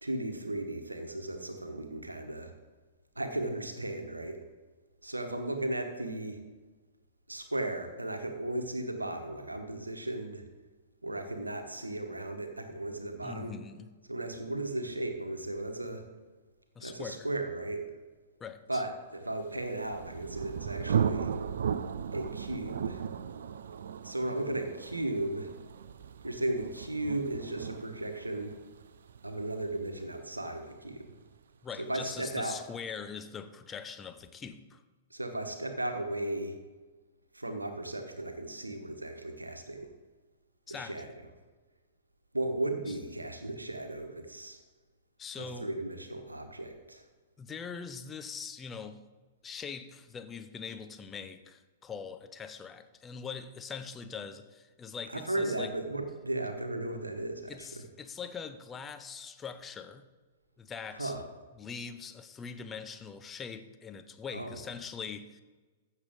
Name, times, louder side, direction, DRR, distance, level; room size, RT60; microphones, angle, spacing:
voice 1, 0.0-2.5 3.1-4.4 5.0-6.4 7.3-10.4 11.0-13.6 14.1-16.0 16.8-17.9 18.7-21.3 22.1-23.0 24.0-25.5 26.2-28.5 29.2-31.2 31.8-32.6 35.1-36.6 37.3-39.9 40.7-41.1 42.3-44.6 45.6-47.0 55.1-57.8 60.9-61.2 64.3-64.6, right 1 dB, 85° right, 1.2 m, -35 dB
voice 2, 13.2-13.9 16.8-17.3 18.4-18.8 24.5-24.6 31.6-34.8 40.7-41.1 42.9-43.0 45.2-45.7 47.4-49.0 49.4-55.7 57.5-60.1 60.6-61.1 61.6-65.4, left 6 dB, 20° left, 0.6 m, -42 dB
Thunder, 19.6-31.1, right 7 dB, 65° right, 0.4 m, -36 dB
14.5 x 6.6 x 3.6 m
figure-of-eight pair, 105°, 0 cm